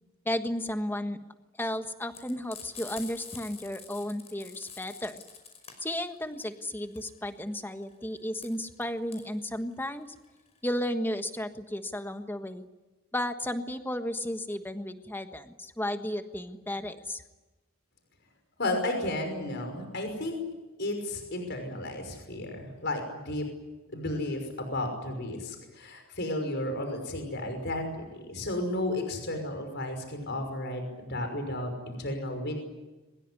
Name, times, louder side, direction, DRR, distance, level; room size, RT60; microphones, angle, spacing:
voice 1, 0.2-1.2 1.6-5.2 5.8-10.1 10.6-12.7 13.1-17.2, left 1 dB, 10° left, 8 dB, 1.5 m, -33 dB
Frying (food), 2.1-10.9, left 6 dB, 30° left, 5.3 m, -47 dB
voice 2, 18.6-20.4 20.8-23.4 23.9-32.6, left 1 dB, 50° left, 5 dB, 5.8 m, -33 dB
23.0 x 21.5 x 9.8 m, 1.1 s
head